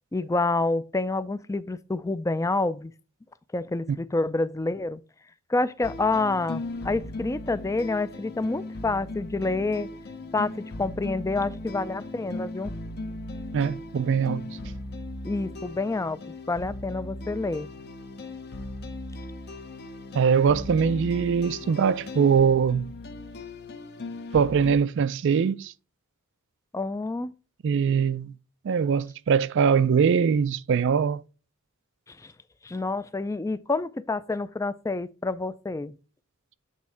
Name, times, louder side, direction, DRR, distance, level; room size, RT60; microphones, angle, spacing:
voice 1, 0.1-2.9 3.5-5.0 5.5-9.9 10.3-12.7 15.2-16.2 16.5-17.7 26.7-27.3 32.1-32.3 32.6-35.9, left 3 dB, 15° left, 0.4 m, -28 dB
sound 1, 5.8-24.8, left 2 dB, 50° left, 0.7 m, -38 dB
voice 2, 13.5-14.5 20.1-22.9 24.3-25.7 27.6-28.3 28.6-31.2, right 6 dB, 55° right, 0.3 m, -22 dB
8.4 x 3.5 x 4.3 m
head